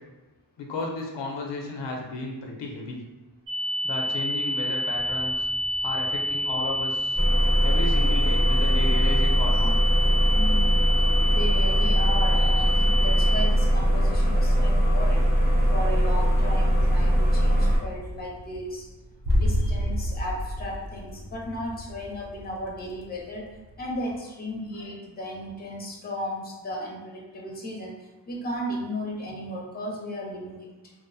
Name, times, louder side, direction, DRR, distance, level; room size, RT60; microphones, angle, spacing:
voice 1, 0.6-3.0 3.8-5.5 5.8-7.2 7.6-9.7 24.8-24.9, left 2 dB, 90° left, 0 dB, 0.5 m, -33 dB
sound 1, 3.5-13.5, left 1 dB, 85° right, 1.2 m, -28 dB
sound 2, 4.9-12.5 12.8-24.2, left 1 dB, 70° right, 0.6 m, -34 dB
sound 3, 7.1-17.8, equal, 20° right, 0.9 m, -21 dB
voice 2, 10.2-10.9 11.2-15.3 15.7-18.9 19.3-23.5 23.8-28.0 28.3-30.9, equal, 25° left, -2 dB, 0.5 m, -35 dB
2.5 x 2.0 x 2.6 m, 1.1 s
wide cardioid pair, 90°, 42 cm